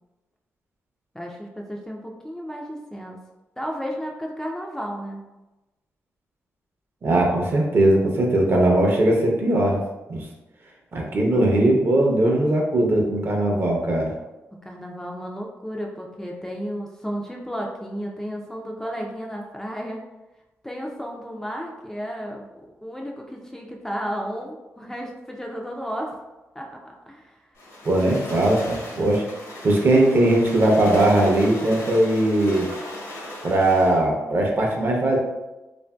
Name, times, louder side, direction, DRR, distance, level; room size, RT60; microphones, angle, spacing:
voice 1, 1.1-3.2 3.6-5.2 14.6-20.1 20.6-26.1 26.6-27.4, equal, 10° left, 0 dB, 0.3 m, -33 dB
voice 2, 7.0-9.8 10.1-10.3 10.9-14.1 27.8-29.2 29.6-32.7 33.4-35.2, right 1 dB, 45° right, 0 dB, 0.6 m, -19 dB
sound 1, 27.6-34.0, left 1 dB, 80° left, 0.9 m, -37 dB
2.8 x 2.5 x 2.2 m, 1.0 s
cardioid pair, 95°, 5 cm